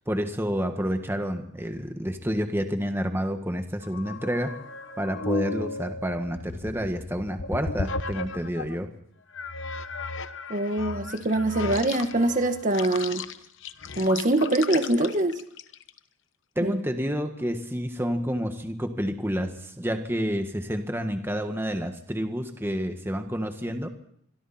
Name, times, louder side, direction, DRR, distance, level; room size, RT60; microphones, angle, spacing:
voice 1, 0.1-4.5 5.0-8.9 16.5-23.9, equal, 10° right, 6 dB, 1.6 m, -29 dB
sound 1, 3.8-8.8 9.3-16.0, left 3 dB, 60° left, 1.1 m, -35 dB
voice 2, 10.5-13.2 14.0-15.4 16.6-16.8, right 1 dB, 35° right, 7 dB, 1.5 m, -24 dB
26.5 x 22.5 x 4.3 m, 0.68 s
head